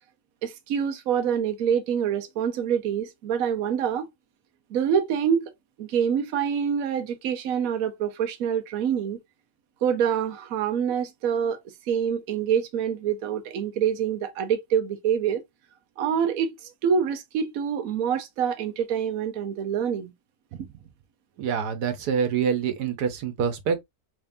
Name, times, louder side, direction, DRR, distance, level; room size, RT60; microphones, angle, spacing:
voice 1, 0.4-4.1 4.7-5.5 5.8-9.2 9.8-11.6 11.9-15.4 16.0-16.5 16.8-20.1, right 8 dB, 65° right, 1.1 m, -26 dB
voice 2, 21.4-23.8, right 7 dB, 85° right, 1.4 m, -26 dB
3.6 x 3.4 x 2.6 m
omnidirectional pair, 1.7 m